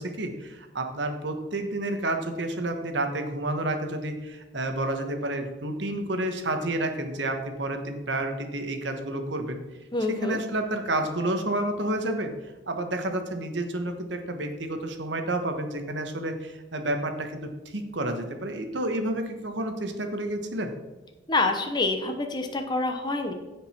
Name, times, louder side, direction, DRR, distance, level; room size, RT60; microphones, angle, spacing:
voice 1, 0.0-9.6 10.2-12.3 12.7-20.7, right 1 dB, 70° right, 6 dB, 1.3 m, -30 dB
voice 2, 9.9-10.4 21.3-23.3, left 3 dB, 25° left, 4 dB, 0.8 m, -27 dB
15.5 x 5.3 x 4.4 m, 1.2 s
head